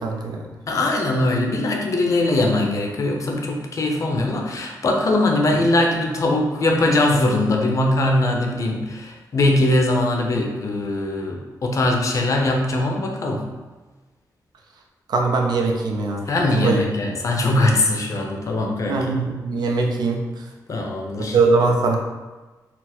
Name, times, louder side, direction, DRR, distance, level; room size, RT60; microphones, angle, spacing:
voice 1, 0.0-0.5 15.1-16.2 16.6-16.8 18.9-20.2 21.3-22.0, right 3 dB, 80° right, 2 dB, 0.5 m, -21 dB
voice 2, 0.7-13.5 16.3-19.1 20.7-21.4, left 2 dB, 50° left, 1 dB, 0.6 m, -21 dB
4.3 x 2.0 x 4.2 m, 1.2 s
wide cardioid pair, 135°, 7 cm